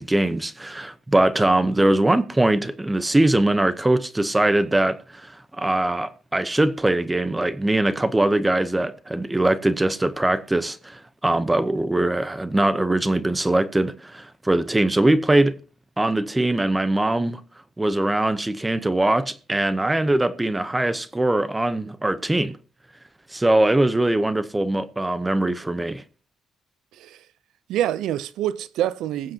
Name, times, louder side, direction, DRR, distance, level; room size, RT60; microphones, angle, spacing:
voice 1, 0.0-15.6 16.0-17.4 17.8-22.6 23.3-26.0, right 1 dB, 15° right, 0.8 m, -21 dB
voice 2, 26.9-27.3 27.7-29.3, right 12 dB, 85° right, 0.5 m, -26 dB
21.5 x 7.6 x 2.9 m
cardioid pair, 90°, 0 cm